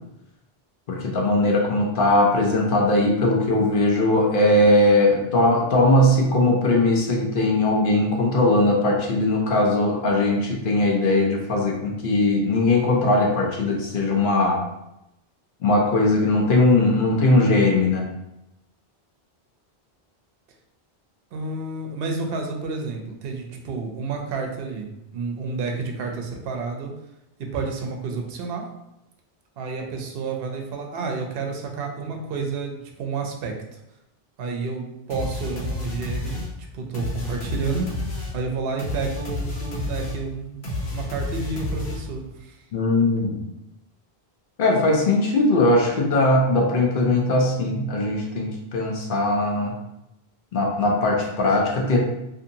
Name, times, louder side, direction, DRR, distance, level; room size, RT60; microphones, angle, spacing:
voice 1, 0.9-14.6 15.6-18.1 42.7-43.4 44.6-49.7 50.5-52.0, left 2 dB, 60° left, -1 dB, 0.7 m, -20 dB
voice 2, 21.3-26.9 27.5-28.7 29.6-33.5 34.4-36.4 36.7-40.6 40.9-42.6, right 4 dB, 70° right, 2 dB, 0.8 m, -30 dB
sound 1, 35.1-42.3, left 1 dB, 80° left, 1.1 m, -30 dB
2.7 x 2.6 x 2.6 m, 0.86 s
omnidirectional pair, 1.1 m